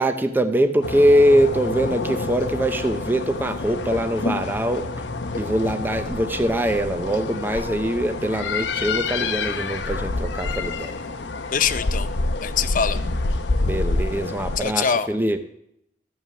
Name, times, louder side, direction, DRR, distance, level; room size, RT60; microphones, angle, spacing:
voice 1, 0.0-4.8 5.3-11.0 13.6-15.4, right 1 dB, 10° right, 8 dB, 0.5 m, -22 dB
sound 1, 0.8-14.6, left 3 dB, 85° left, 0.8 m, -27 dB
voice 2, 11.5-12.1 12.4-13.0 14.6-15.1, left 7 dB, 50° left, 12 dB, 0.6 m, -23 dB
14.0 x 5.6 x 6.9 m, 0.76 s
head